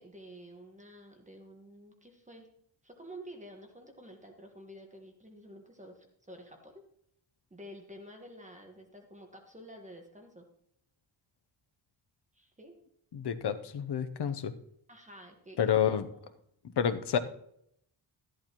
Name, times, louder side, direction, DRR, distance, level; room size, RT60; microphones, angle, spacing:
voice 1, 0.0-2.5 2.8-6.8 7.5-10.4 12.3-12.7 14.9-16.0, equal, 15° right, 2 dB, 1.4 m, -50 dB
voice 2, 13.1-14.5 15.6-16.1 16.8-17.2, left 8 dB, 60° left, 10 dB, 0.8 m, -29 dB
13.0 x 11.0 x 3.0 m, 0.72 s
wide cardioid pair, 145°, 46 cm